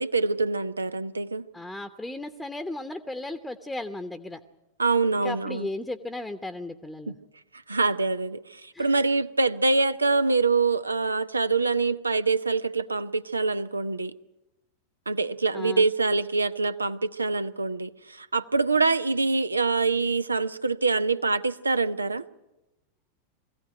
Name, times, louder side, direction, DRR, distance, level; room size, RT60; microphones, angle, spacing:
voice 1, 0.0-1.5 4.8-5.7 7.1-7.2 7.7-14.1 15.1-22.2, right 3 dB, 80° right, 13 dB, 0.7 m, -25 dB
voice 2, 1.5-4.4 5.1-7.2 8.7-8.9 15.5-15.8, left 2 dB, 5° left, 9 dB, 1.0 m, -35 dB
22.5 x 16.0 x 9.0 m, 0.98 s
figure-of-eight pair, 90°, 0 cm